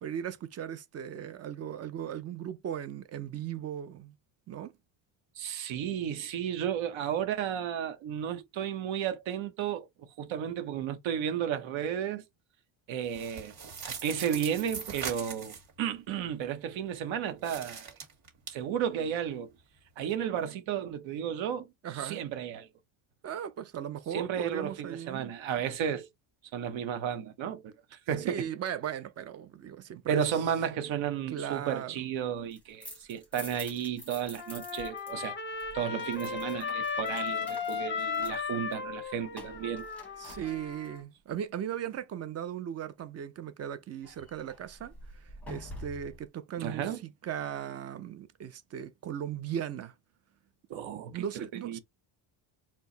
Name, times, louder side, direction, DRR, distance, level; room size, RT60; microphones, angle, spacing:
voice 1, 0.0-4.1 4.5-4.7 21.8-22.2 23.2-25.3 28.2-30.4 31.3-32.0 40.2-49.9 51.1-51.8, right 9 dB, 35° right, 0.4 m, -38 dB
voice 2, 5.4-12.2 12.9-13.5 13.8-17.9 18.5-19.5 20.0-21.7 21.9-22.7 24.1-26.1 26.5-28.5 30.1-35.3 35.7-39.9 46.6-47.0 50.7-51.8, right 9 dB, 70° right, 1.0 m, -33 dB
sound 1, 13.0-15.7 17.4-18.5, right 6 dB, 50° right, 1.8 m, -41 dB
sound 2, 32.4-35.1 35.4-41.0 44.0-46.2, left 1 dB, 5° left, 1.0 m, -48 dB
Trumpet, 34.4-41.0, left 6 dB, 25° left, 0.5 m, -36 dB
4.5 x 2.2 x 3.8 m
cardioid pair, 160°, 49 cm